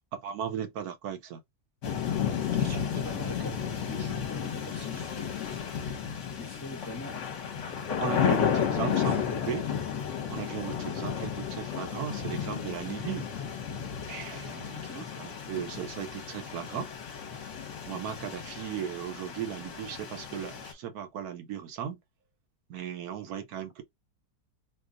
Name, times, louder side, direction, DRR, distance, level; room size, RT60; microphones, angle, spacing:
voice 1, 0.1-1.4 8.0-9.7 10.3-13.3 14.1-16.9 17.9-22.0 22.7-23.8, right 9 dB, 75° right, 1.2 m, -37 dB
sound 1, 1.8-20.7, left 8 dB, 55° left, 1.0 m, -33 dB
voice 2, 2.6-5.6 6.4-7.2 8.3-9.2 11.1-11.2 14.7-15.1, left 1 dB, 15° left, 0.5 m, -43 dB
2.6 x 2.3 x 3.7 m
omnidirectional pair, 1.7 m